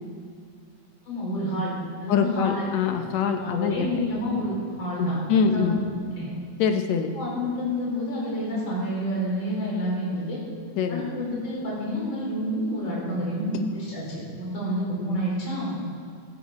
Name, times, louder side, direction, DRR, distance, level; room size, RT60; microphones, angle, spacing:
voice 1, 1.0-1.7 2.0-2.9 3.4-5.2 5.5-5.9 6.2-6.3 7.1-10.4 10.9-15.8, equal, 40° left, -6 dB, 5.1 m, -29 dB
voice 2, 2.1-3.9 5.0-5.8 6.6-7.2 10.8-11.1, left 6 dB, 70° left, 6 dB, 2.1 m, -24 dB
15.5 x 14.5 x 4.2 m, 2.3 s
omnidirectional pair, 3.4 m